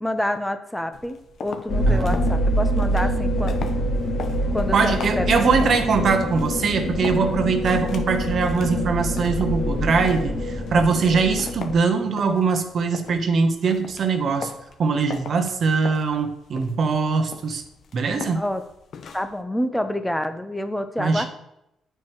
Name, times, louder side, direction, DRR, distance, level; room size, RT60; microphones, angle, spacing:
voice 1, 0.0-3.7 4.5-5.5 18.3-18.6 19.1-21.3, left 1 dB, 5° left, 9 dB, 0.6 m, -27 dB
sound 1, 0.9-19.4, left 6 dB, 60° left, 0.7 m, -40 dB
sound 2, 1.7-11.7, equal, 40° left, 1.8 m, -25 dB
voice 2, 1.9-2.2 4.7-14.5 14.8-17.6 17.9-18.4 21.0-21.3, right 5 dB, 55° right, 6 dB, 0.8 m, -22 dB
9.4 x 4.5 x 3.0 m, 0.83 s
cardioid pair, 90°, 0 cm